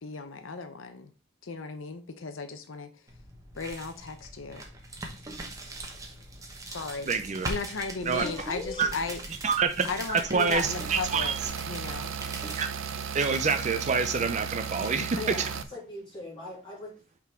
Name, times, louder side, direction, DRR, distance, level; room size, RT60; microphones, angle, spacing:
voice 1, 0.0-1.1 1.4-2.9 3.5-4.7 6.7-7.1 7.4-9.5 9.8-11.3 11.7-12.2 14.8-15.2, left 4 dB, 85° left, 0.7 m, -36 dB
sound 1, 3.1-13.9, right 2 dB, 15° right, 1.0 m, -41 dB
voice 2, 7.1-7.5 8.1-8.2 8.8-8.9 9.4-11.3 12.5-12.7 13.1-15.3, right 5 dB, 35° right, 0.4 m, -27 dB
voice 3, 8.2-8.9 15.1-16.9, left 2 dB, 25° left, 3.1 m, -39 dB
sound 2, 10.6-15.6, right 7 dB, 80° right, 0.6 m, -35 dB
5.9 x 3.8 x 4.3 m
head